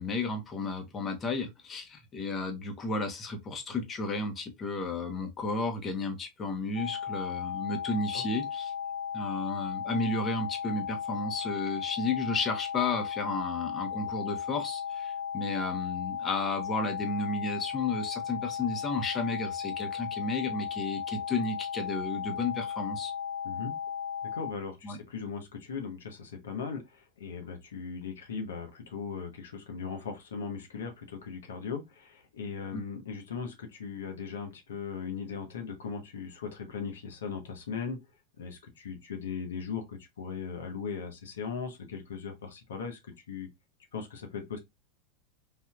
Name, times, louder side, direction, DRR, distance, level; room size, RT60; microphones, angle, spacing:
voice 1, 0.0-8.7 9.1-23.1 24.8-25.0 32.7-32.8, left 3 dB, 30° left, 1.0 m, -33 dB
sound 1, 6.8-24.5, left 7 dB, 65° left, 0.7 m, -36 dB
voice 2, 24.3-38.0 38.4-43.0 43.3-43.5 43.9-44.6, left 6 dB, 85° left, 1.0 m, -38 dB
3.6 x 2.7 x 2.3 m
hypercardioid pair, 100°, 0 cm